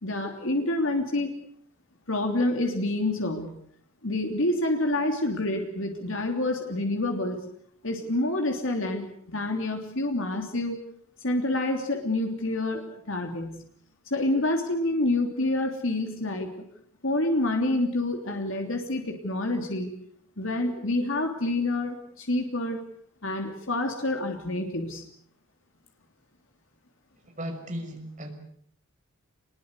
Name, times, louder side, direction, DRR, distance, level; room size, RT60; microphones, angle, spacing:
voice 1, 0.0-1.3 2.1-3.6 4.0-7.4 7.8-10.8 11.2-13.6 14.0-16.7 17.0-19.9 20.4-22.8 23.2-25.0, left 2 dB, 65° left, 3 dB, 3.3 m, -28 dB
voice 2, 27.4-28.3, equal, 35° right, 5 dB, 5.9 m, -35 dB
27.0 x 22.0 x 8.3 m, 0.65 s
head